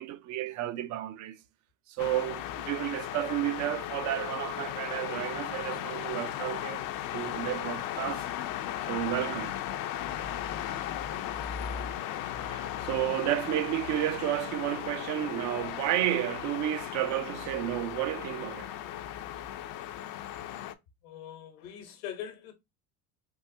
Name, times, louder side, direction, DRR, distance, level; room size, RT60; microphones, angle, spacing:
voice 1, 0.0-1.4 1.9-6.9 7.1-8.2 8.9-9.5 12.4-18.7, right 13 dB, 45° right, 0.5 m, -32 dB
sound 1, 2.0-20.7, left 11 dB, 55° left, 0.5 m, -36 dB
voice 2, 21.0-22.5, left 9 dB, 90° left, 1.1 m, -44 dB
3.6 x 2.5 x 2.6 m
supercardioid pair, 115°, 41 cm